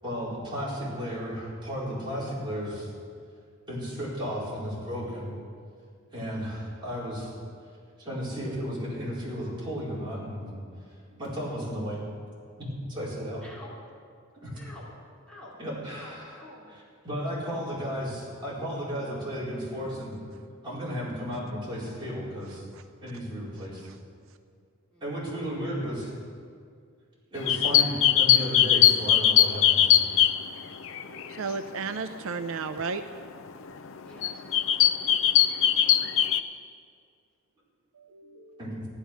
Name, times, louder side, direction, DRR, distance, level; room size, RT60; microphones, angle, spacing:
voice 1, 0.0-2.9 3.7-5.3 6.1-7.3 8.0-10.5 11.2-12.0 12.6-13.4 14.4-14.5 15.6-16.4 16.7-20.1 20.6-22.6 23.0-23.9 25.0-26.1 27.3-30.0 35.8-35.9 38.6-38.8, equal, 25° right, -8 dB, 4.6 m, -34 dB
voice 2, 13.4-13.7 14.5-14.9 15.3-15.6 15.9-16.7 24.9-25.2 31.0-31.4 34.0-34.3 34.6-35.1, left 1 dB, 5° left, -8 dB, 3.7 m, -49 dB
sound 1, 27.4-31.4 31.9-32.1 33.1-33.2 33.7-33.9 34.2-36.4, left 10 dB, 65° left, 0.6 m, -21 dB
voice 3, 31.4-33.0 38.0-38.6, right 4 dB, 70° right, 9 dB, 0.5 m, -34 dB
14.0 x 11.5 x 6.1 m, 2.2 s
head